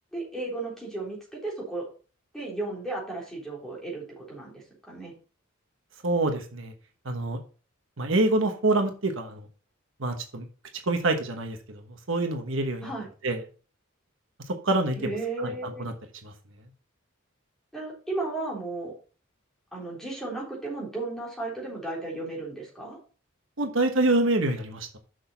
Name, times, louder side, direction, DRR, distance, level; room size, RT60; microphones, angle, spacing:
voice 1, 0.1-1.9 2.3-5.1 12.8-13.1 15.0-15.9 17.7-18.9 19.7-23.0, right 2 dB, ahead, -4 dB, 3.8 m, -34 dB
voice 2, 6.0-6.7 7.0-7.4 8.0-9.5 10.0-10.4 10.9-11.8 12.1-12.9 13.2-13.4 14.5-15.1 15.4-15.9 16.2-16.3 23.6-24.9, right 2 dB, 65° right, 5 dB, 1.2 m, -26 dB
6.4 x 6.3 x 5.6 m, 0.38 s
head